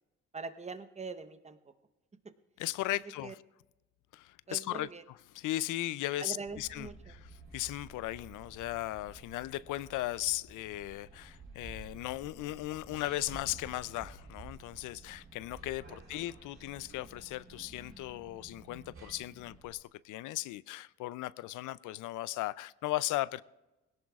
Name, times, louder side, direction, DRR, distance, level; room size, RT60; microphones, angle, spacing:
voice 1, 0.3-1.7 2.2-2.3 2.9-3.3 4.5-5.0 6.2-7.2 15.9-16.0, right 4 dB, 20° right, 10 dB, 1.0 m, -43 dB
voice 2, 2.6-3.4 4.1-6.9 7.5-23.4, left 16 dB, 85° left, 19 dB, 0.5 m, -37 dB
sound 1, 6.5-19.7, right 3 dB, 45° right, 3.2 m, -52 dB
20.5 x 17.0 x 2.4 m, 1.0 s
cardioid pair, 90°, 30 cm